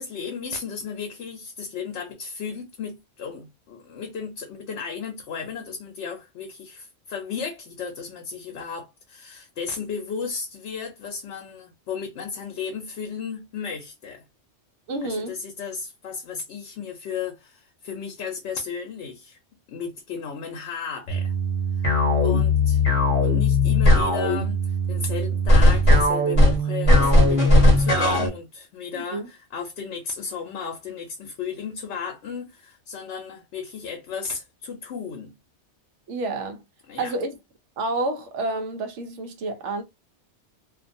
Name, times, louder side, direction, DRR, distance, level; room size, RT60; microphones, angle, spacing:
voice 1, 0.0-14.2 15.0-19.4 19.7-21.3 21.8-21.9 22.2-22.8 23.2-35.3 36.9-37.2, left 6 dB, 80° left, 0.9 m, -34 dB
voice 2, 14.9-15.3 28.9-29.3 36.1-36.6 37.0-37.3 37.8-39.8, right 2 dB, 90° right, 0.9 m, -29 dB
sound 1, 21.1-28.3, left 1 dB, 35° left, 0.7 m, -18 dB
2.4 x 2.2 x 2.6 m
omnidirectional pair, 1.2 m